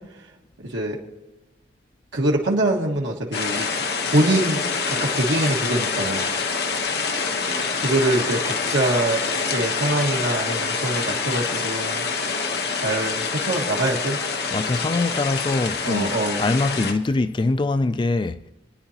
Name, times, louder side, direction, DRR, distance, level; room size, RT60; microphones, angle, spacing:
voice 1, 0.6-1.0 2.1-3.7 4.1-4.6 4.9-6.3 7.3-7.4 7.8-9.2 9.5-12.0 12.7-14.2 15.8-16.4, right 1 dB, 80° right, 1.6 m, -24 dB
sound 1, 3.3-16.9, left 4 dB, 60° left, 1.1 m, -26 dB
voice 2, 14.5-16.1 16.4-18.5, left 3 dB, 25° left, 0.3 m, -23 dB
27.5 x 9.8 x 2.9 m
head